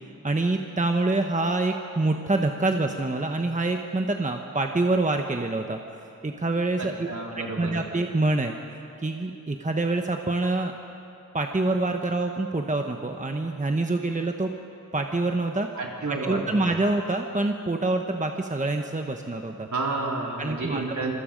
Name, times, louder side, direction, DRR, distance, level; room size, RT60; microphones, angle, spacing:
voice 1, 0.2-5.8 6.2-8.6 9.0-10.7 11.3-14.5 14.9-15.7 16.1-19.7 20.4-21.0, right 2 dB, 20° right, 4 dB, 1.1 m, -26 dB
voice 2, 6.8-7.8 15.8-16.5 19.7-21.1, right 3 dB, 60° right, -2 dB, 3.9 m, -30 dB
26.5 x 23.5 x 5.3 m, 2.9 s
wide cardioid pair, 80°, 33 cm